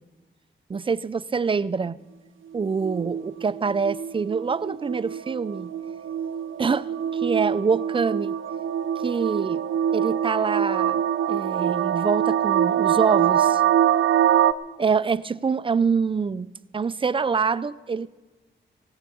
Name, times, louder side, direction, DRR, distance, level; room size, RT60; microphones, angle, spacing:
voice 1, 0.7-2.0 2.5-5.7 6.6-8.3 9.0-9.6 9.9-11.0 11.3-13.6 14.8-18.1, right 5 dB, 25° right, 0.4 m, -25 dB
sound 1, 2.5-14.5, right 10 dB, 80° right, 0.6 m, -24 dB
17.0 x 9.4 x 8.4 m
wide cardioid pair, 115°, 20 cm